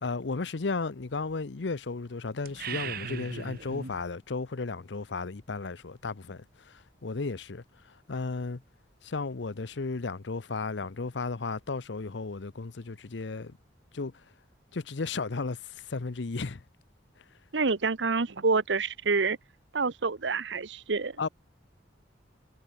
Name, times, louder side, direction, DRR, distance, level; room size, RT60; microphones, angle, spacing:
voice 1, 0.0-8.6 9.0-13.6 13.9-14.2 14.7-16.6 17.2-17.3 21.2-21.3, left 4 dB, 70° left, 0.8 m, -34 dB
sound 1, 2.4-4.0, right 5 dB, 55° right, 2.7 m, -37 dB
voice 2, 17.5-19.4 19.7-21.3, right 4 dB, 75° right, 1.0 m, -27 dB
head